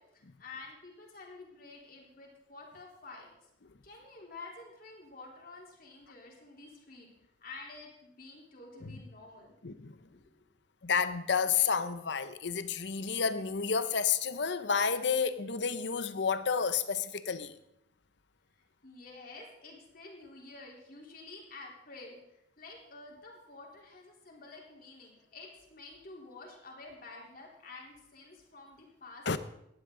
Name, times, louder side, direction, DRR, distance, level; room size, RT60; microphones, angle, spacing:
voice 1, 0.0-3.3 3.8-7.1 7.4-9.6 10.1-10.4 18.8-22.2 22.6-29.4, left 3 dB, 50° left, 3.4 m, -50 dB
voice 2, 10.8-17.6 29.3-29.4, left 6 dB, 65° left, 0.8 m, -30 dB
17.5 x 11.5 x 3.8 m
head